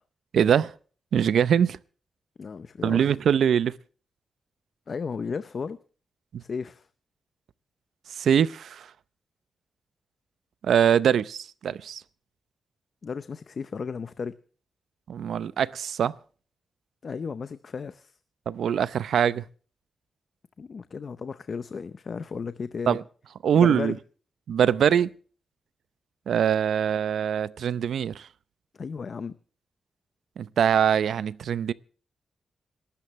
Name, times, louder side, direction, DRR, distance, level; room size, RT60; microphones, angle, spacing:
voice 1, 0.3-0.7 1.1-1.8 2.8-3.7 6.3-6.4 8.2-8.9 10.6-12.0 15.1-16.1 18.5-19.4 22.9-23.0 23.4-23.9 24.5-25.1 26.3-28.3 30.4-31.7, right 8 dB, 80° right, 0.6 m, -23 dB
voice 2, 2.4-3.1 4.9-5.8 6.4-6.9 13.0-14.4 17.0-18.2 20.6-23.0 23.5-24.0 28.7-29.4, left 5 dB, 45° left, 0.7 m, -34 dB
27.0 x 13.0 x 3.2 m
wide cardioid pair, 130°, 0 cm